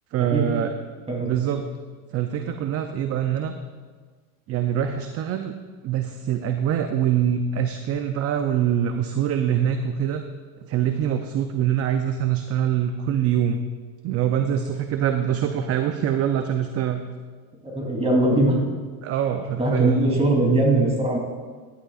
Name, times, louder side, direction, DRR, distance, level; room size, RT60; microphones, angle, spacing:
voice 1, 0.1-0.7 1.2-1.7 2.1-3.5 4.5-5.5 5.8-10.2 10.6-13.6 14.0-17.0 19.0-20.1, right 9 dB, 35° right, 7 dB, 0.6 m, -24 dB
voice 2, 17.6-18.6 19.6-21.2, right 1 dB, 15° right, -2 dB, 3.1 m, -21 dB
15.0 x 11.0 x 2.5 m, 1.5 s
supercardioid pair, 120°, 44 cm